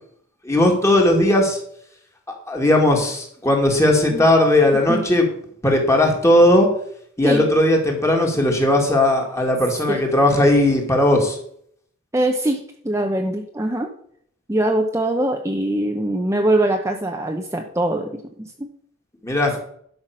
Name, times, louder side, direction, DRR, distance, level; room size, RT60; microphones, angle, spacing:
voice 1, 0.4-1.6 2.5-5.3 5.6-6.7 7.2-11.4 19.2-19.6, left 1 dB, 15° left, 2 dB, 2.2 m, -17 dB
voice 2, 12.1-13.9 14.5-18.7, right 1 dB, 15° right, 3 dB, 0.8 m, -22 dB
11.5 x 5.9 x 6.5 m, 0.66 s
head